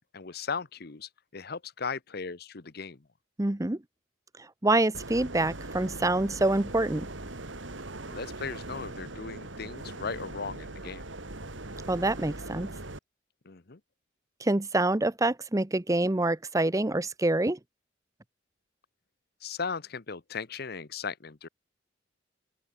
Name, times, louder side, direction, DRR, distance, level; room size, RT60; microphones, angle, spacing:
voice 1, 0.1-3.1 8.1-11.0 13.4-13.8 19.4-21.5, left 5 dB, 55° left, 1.0 m, -37 dB
voice 2, 3.4-3.8 4.6-7.1 11.9-12.7 14.4-17.6, right 2 dB, 15° right, 0.7 m, -26 dB
sound 1, 4.9-13.0, right 2 dB, 75° right, 3.1 m, -40 dB
open air
head